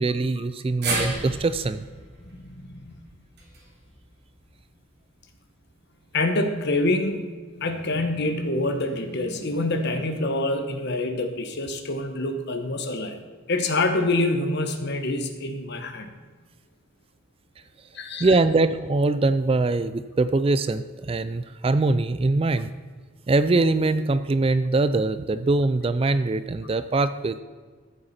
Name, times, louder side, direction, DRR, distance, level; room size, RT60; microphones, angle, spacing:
voice 1, 0.0-1.8 18.2-22.7 23.3-27.4, right 3 dB, 25° right, 12 dB, 0.3 m, -22 dB
sound 1, 0.8-5.1 5.4-5.5 6.7-6.8, right 2 dB, 50° right, 3.1 m, -34 dB
voice 2, 6.1-7.2 7.6-13.2 13.5-16.1 17.9-18.3, left 2 dB, 50° left, 6 dB, 1.1 m, -26 dB
14.0 x 7.7 x 4.2 m, 1.5 s
head